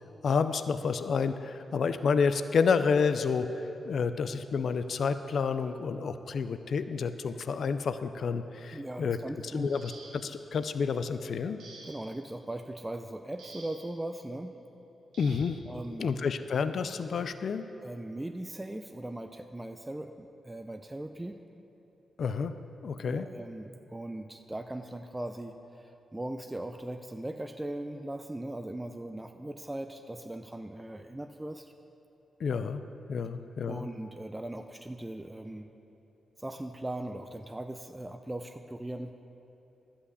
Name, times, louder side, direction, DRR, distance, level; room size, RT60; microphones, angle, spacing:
voice 1, 0.2-9.2 9.5-11.6 15.2-15.7 16.0-17.6 22.2-22.5 22.8-23.3 32.4-32.8 33.1-33.9, left 5 dB, 65° left, 11 dB, 0.4 m, -29 dB
voice 2, 8.7-9.7 11.8-14.6 15.7-16.1 17.8-21.4 23.0-31.7 33.6-35.7 36.4-39.1, right 1 dB, 15° right, 6 dB, 0.5 m, -39 dB
sound 1, 9.6-10.5 11.6-12.3 13.4-14.0 15.1-15.6 16.8-17.0 17.5-17.7, right 3 dB, 85° right, 1.5 m, -51 dB
11.0 x 5.7 x 8.0 m, 2.9 s
cardioid pair, 65°, 0 cm